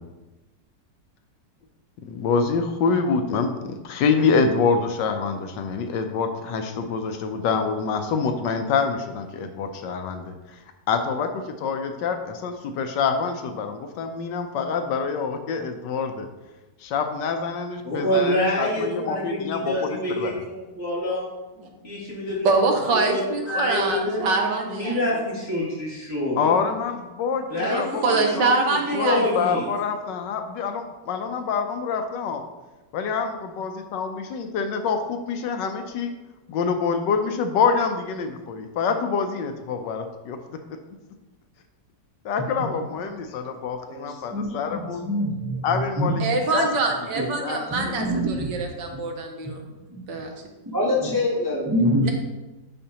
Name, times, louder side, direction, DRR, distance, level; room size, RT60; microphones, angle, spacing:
voice 1, 2.0-10.6 10.9-16.3 16.8-20.3 26.4-28.6 28.9-32.4 32.9-36.1 36.5-40.4 40.7-40.8 42.2-45.0 45.6-46.2 46.5-46.7 47.4-48.1, left 5 dB, 75° left, 6 dB, 1.3 m, -26 dB
voice 2, 17.8-21.3 21.8-22.5 23.1-23.2 23.5-24.3 24.7-26.6 27.5-28.2 28.9-29.6, left 1 dB, 35° left, -8 dB, 2.6 m, -26 dB
voice 3, 22.4-25.2 27.6-29.7 46.2-49.7 50.1-50.3 52.0-52.1, right 3 dB, 75° right, 3 dB, 1.6 m, -25 dB
voice 4, 43.9-46.2 47.1-47.3 47.7-48.5 48.9-49.0 49.4-49.5 49.9-50.0 50.6-52.1, equal, 30° right, -4 dB, 0.4 m, -25 dB
11.0 x 4.3 x 2.9 m, 1.1 s
omnidirectional pair, 2.0 m